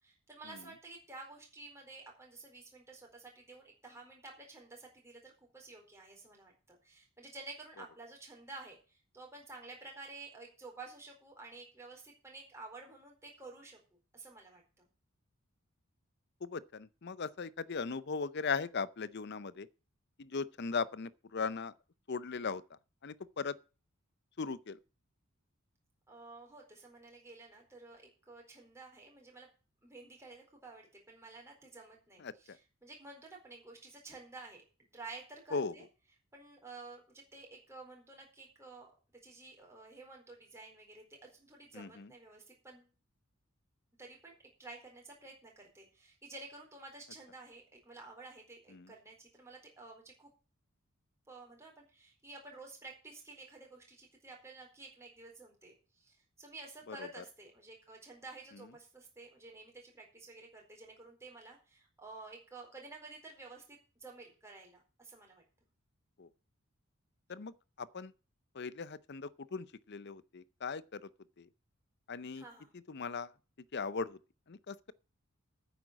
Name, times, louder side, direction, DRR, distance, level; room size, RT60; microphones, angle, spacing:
voice 1, 0.0-14.9 26.1-29.5 29.8-34.6 34.9-35.8 36.3-38.9 39.2-42.9 44.0-44.3 44.6-50.3 51.3-65.4 72.3-72.7, right 3 dB, 15° right, 4.3 m, -52 dB
voice 2, 16.4-19.7 20.2-21.7 22.1-23.6 24.4-24.8 32.2-32.6 35.5-35.7 41.7-42.1 48.7-48.9 56.9-57.2 66.2-66.3 67.3-68.1 68.5-71.1 71.4-71.5 72.1-72.4 72.9-73.3 73.7-74.2 74.5-74.9, left 5 dB, 50° left, 0.6 m, -38 dB
9.5 x 8.0 x 7.5 m
head